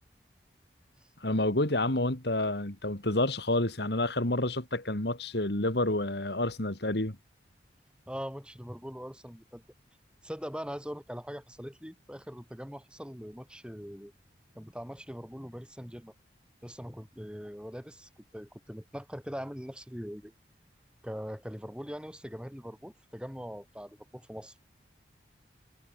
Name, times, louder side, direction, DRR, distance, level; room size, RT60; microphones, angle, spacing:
voice 1, 1.2-7.2, left 1 dB, 60° left, 2.6 m, -29 dB
voice 2, 8.1-9.6 10.2-14.1 14.5-16.1 16.6-20.3 21.0-24.5, equal, 5° right, 7.8 m, -42 dB
head